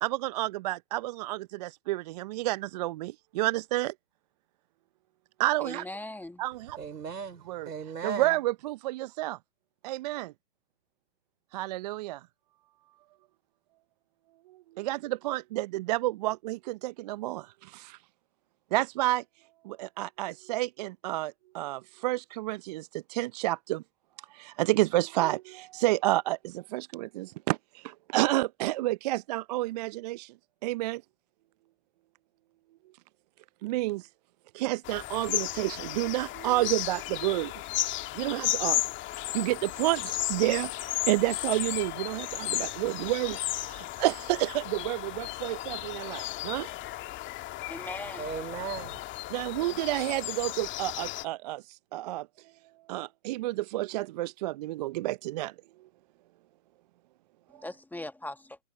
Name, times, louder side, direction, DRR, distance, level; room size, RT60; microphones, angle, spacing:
voice 1, 0.0-3.9 5.4-5.8 6.4-6.8 7.5-7.7 8.0-9.4 9.8-10.3 11.5-12.2 14.8-18.0 18.7-19.2 19.6-23.8 24.3-30.3 30.6-31.0 33.6-34.1 34.5-37.5 38.1-38.8 39.3-46.7 49.3-52.3 52.9-55.5, right 17 dB, 25° right, 0.6 m, -30 dB
voice 2, 5.6-6.4 47.7-48.3 57.5-58.6, left 1 dB, 5° left, 1.7 m, -40 dB
voice 3, 6.8-8.4 47.8-49.0, right 6 dB, 70° right, 4.5 m, -37 dB
sound 1, 34.8-51.2, left 16 dB, 25° left, 2.3 m, -34 dB
figure-of-eight pair, 120°, 48 cm